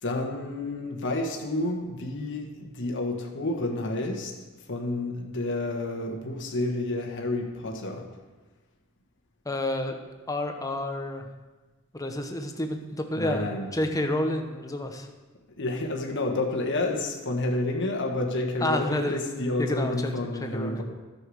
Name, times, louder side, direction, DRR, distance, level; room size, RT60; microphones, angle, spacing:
voice 1, 0.0-4.3 4.7-8.1 13.1-13.7 15.6-20.8, left 2 dB, 60° left, 1 dB, 1.4 m, -30 dB
voice 2, 9.4-10.0 10.3-11.3 11.9-13.5 13.7-15.1 18.6-19.2 19.6-20.1 20.4-20.8, left 1 dB, 15° left, 5 dB, 0.9 m, -29 dB
11.5 x 7.0 x 6.4 m, 1.2 s
head